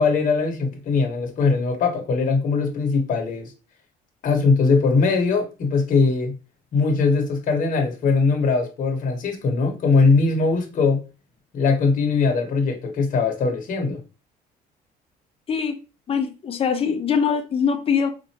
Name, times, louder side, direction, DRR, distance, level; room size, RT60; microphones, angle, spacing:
voice 1, 0.0-3.5 4.2-6.3 6.7-11.0 11.5-14.0, left 4 dB, 50° left, 1.0 m, -20 dB
voice 2, 16.1-18.1, left 6 dB, 35° left, 0.6 m, -22 dB
4.2 x 2.5 x 2.8 m
cardioid pair, 110°, 17 cm